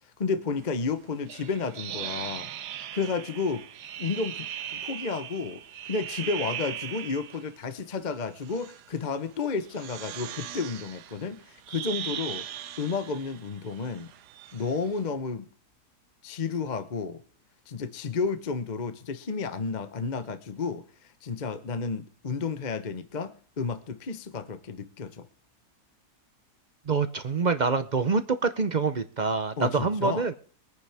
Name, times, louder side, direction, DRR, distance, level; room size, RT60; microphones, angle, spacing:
voice 1, 0.2-2.5 2.9-3.7 4.0-5.6 5.9-12.5 12.8-14.1 14.5-15.4 16.2-17.2 17.7-25.3 29.6-30.3, left 4 dB, 35° left, 11 dB, 0.9 m, -32 dB
sound 1, 1.3-7.5 8.3-8.9 9.6-15.0, right 10 dB, 90° right, 1.4 m, -39 dB
voice 2, 26.9-30.3, right 4 dB, 45° right, 11 dB, 0.6 m, -26 dB
23.0 x 9.5 x 3.5 m, 0.42 s
omnidirectional pair, 1.7 m